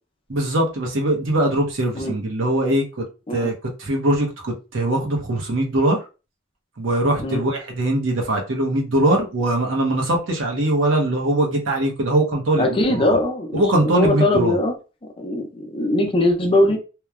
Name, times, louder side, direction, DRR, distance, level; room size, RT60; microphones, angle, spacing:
voice 1, 0.3-3.0 3.3-3.5 3.8-6.0 6.8-13.2 13.5-14.6, right 1 dB, 80° right, 0.8 m, -21 dB
voice 2, 12.6-14.8 15.2-16.8, left 1 dB, 25° left, 0.4 m, -21 dB
3.0 x 2.2 x 2.3 m
head